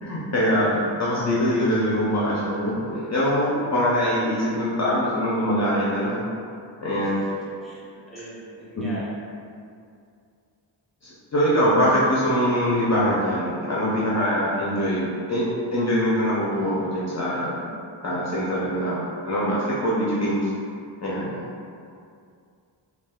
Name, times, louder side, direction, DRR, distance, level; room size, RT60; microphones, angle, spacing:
voice 1, 0.0-6.3 6.8-7.2 8.8-8.9 11.0-17.5 18.0-20.5 21.0-21.4, equal, 40° left, -7 dB, 0.4 m, -23 dB
voice 2, 8.1-9.1, right 1 dB, ahead, -9 dB, 0.7 m, -41 dB
3.4 x 2.3 x 2.2 m, 2.4 s
wide cardioid pair, 115°, 46 cm